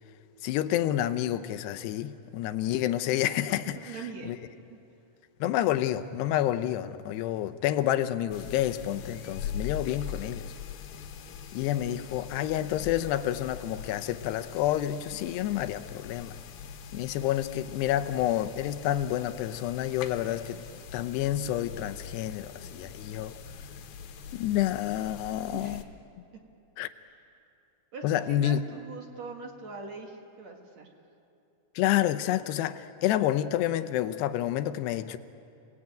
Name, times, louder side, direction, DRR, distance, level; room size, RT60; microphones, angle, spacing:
voice 1, 0.4-4.4 5.4-10.5 11.5-16.4 16.9-20.6 20.9-23.3 24.3-25.8 26.8-26.9 28.0-28.6 31.8-35.2, left 12 dB, 85° left, 3.0 m, -29 dB
voice 2, 3.8-4.3 25.5-25.9 27.9-30.9, right 4 dB, 50° right, 2.6 m, -42 dB
sound 1, 8.3-25.8, left 7 dB, 70° left, 3.0 m, -42 dB
29.5 x 19.5 x 9.0 m
omnidirectional pair, 4.7 m